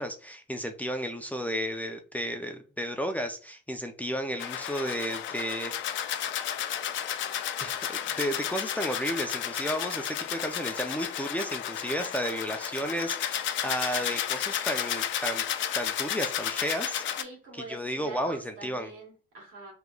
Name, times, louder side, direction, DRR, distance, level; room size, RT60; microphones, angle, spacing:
voice 1, 0.0-5.7 7.6-15.4 15.7-17.0 17.5-18.9, equal, 5° left, 0.4 m, -33 dB
sound 1, 4.4-17.2, left 10 dB, 70° left, 0.4 m, -32 dB
voice 2, 17.2-19.7, right 2 dB, 85° right, 1.6 m, -45 dB
3.5 x 3.0 x 2.3 m
cardioid pair, 90°, 20 cm